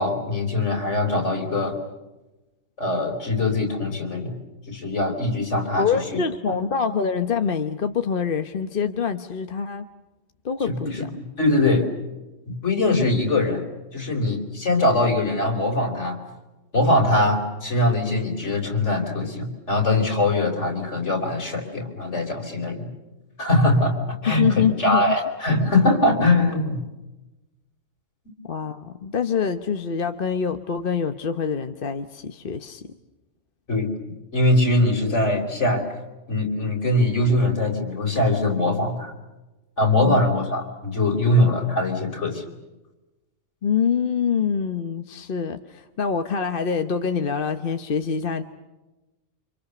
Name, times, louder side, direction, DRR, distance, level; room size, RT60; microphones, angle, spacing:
voice 1, 0.0-1.8 2.8-4.4 4.7-6.2 6.5-6.6 10.6-11.9 12.5-13.6 13.9-16.2 16.7-22.9 23.4-24.0 24.2-26.8 33.7-33.9 34.3-35.8 36.3-39.1 39.8-42.4, left 2 dB, 65° left, 2 dB, 4.7 m, -22 dB
voice 2, 5.8-9.9 10.4-11.1 24.3-25.2 28.4-32.9 40.0-40.2 43.6-48.4, left 6 dB, 45° left, 8 dB, 1.2 m, -25 dB
29.5 x 26.5 x 6.8 m, 1.1 s
omnidirectional pair, 1.3 m